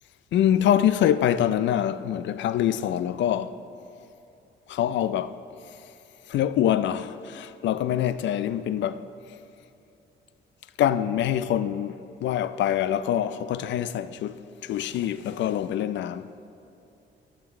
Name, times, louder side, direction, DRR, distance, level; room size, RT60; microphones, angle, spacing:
voice 1, 0.3-3.6 4.7-5.4 6.3-9.0 10.8-16.3, left 10 dB, 65° left, 0.4 m, -25 dB
12.5 x 8.1 x 3.6 m
cardioid pair, 90°, 20 cm